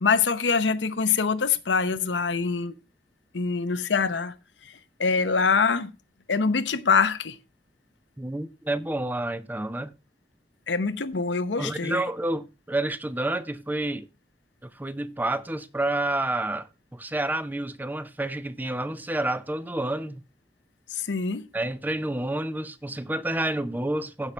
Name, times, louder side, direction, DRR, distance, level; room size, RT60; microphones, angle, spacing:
voice 1, 0.0-2.7 3.3-4.3 5.0-5.9 6.3-7.4 10.7-12.0 20.9-21.4, left 5 dB, 90° left, 0.8 m, -24 dB
voice 2, 8.2-10.0 11.6-14.1 14.6-20.2 21.5-24.3, right 1 dB, 10° right, 0.6 m, -29 dB
15.0 x 5.6 x 3.3 m
head